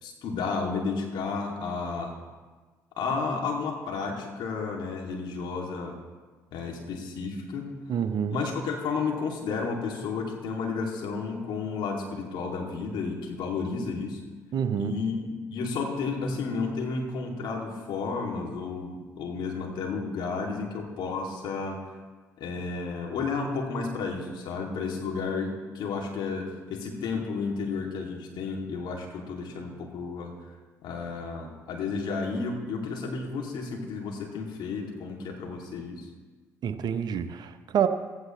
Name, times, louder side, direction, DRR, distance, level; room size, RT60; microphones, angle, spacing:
voice 1, 0.0-2.1 3.0-6.0 6.5-7.7 8.3-14.2 14.8-21.7 22.4-30.3 30.8-36.1, left 4 dB, 60° left, 0 dB, 2.7 m, -32 dB
voice 2, 7.9-8.4 14.5-14.9 36.6-37.9, right 8 dB, 55° right, 10 dB, 0.9 m, -27 dB
15.5 x 15.0 x 3.2 m, 1.3 s
hypercardioid pair, 50°, 9 cm